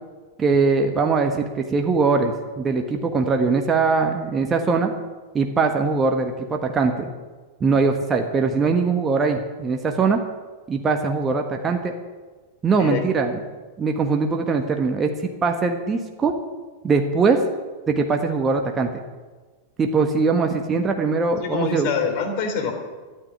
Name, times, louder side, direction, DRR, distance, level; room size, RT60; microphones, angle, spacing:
voice 1, 0.4-4.9 5.3-7.1 7.6-10.2 10.7-11.9 12.6-13.4 13.8-16.4 16.8-17.4 17.9-18.9 19.8-21.9, right 4 dB, 20° right, 3 dB, 1.4 m, -21 dB
voice 2, 21.4-22.7, left 6 dB, 45° left, 5 dB, 3.1 m, -25 dB
13.5 x 9.1 x 9.7 m, 1.3 s
figure-of-eight pair, 90°, 0 cm